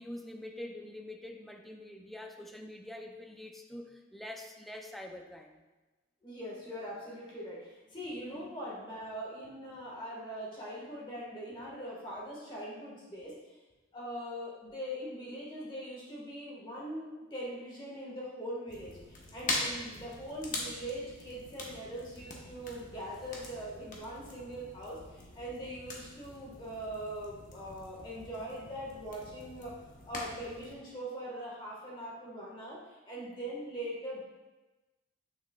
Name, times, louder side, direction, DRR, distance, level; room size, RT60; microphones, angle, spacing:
voice 1, 0.0-5.6, left 1 dB, ahead, 2 dB, 0.5 m, -45 dB
voice 2, 6.2-13.4 13.9-29.8 30.1-34.2, equal, 25° left, -5 dB, 1.6 m, -41 dB
sound 1, 18.7-30.7, left 2 dB, 40° left, 1.1 m, -43 dB
7.9 x 6.5 x 2.4 m, 1.1 s
head